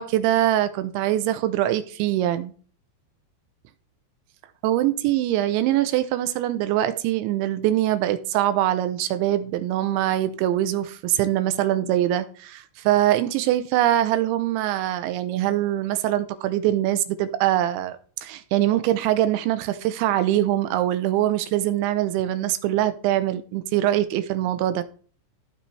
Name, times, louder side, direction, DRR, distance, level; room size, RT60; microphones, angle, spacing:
voice 1, 0.0-2.5 4.6-24.8, right 13 dB, 80° right, 2.7 m, -23 dB
15.0 x 6.5 x 3.2 m
omnidirectional pair, 5.9 m